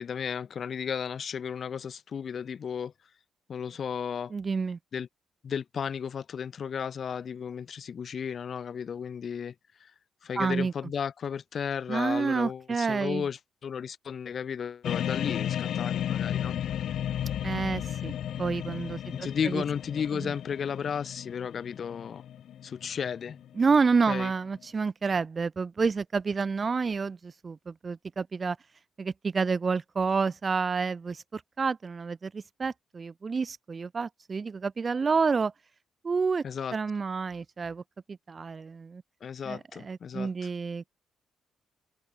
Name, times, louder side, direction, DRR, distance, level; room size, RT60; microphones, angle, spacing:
voice 1, 0.0-2.9 3.5-4.3 4.9-5.1 5.4-9.5 9.8-9.9 10.2-16.6 19.1-22.2 22.6-23.4 24.1-24.3 36.4-36.8 39.2-40.5, left 7 dB, 50° left, 4.3 m, -34 dB
voice 2, 4.3-4.8 10.4-10.7 11.9-13.2 17.4-18.1 18.4-19.6 20.1-20.3 23.6-28.6 29.0-35.5 36.0-36.4 36.7-37.8 38.1-39.0 39.5-40.9, right 5 dB, 35° right, 5.9 m, -29 dB
sound 1, 14.8-23.8, left 10 dB, 70° left, 1.4 m, -34 dB
cardioid pair, 90°, 0 cm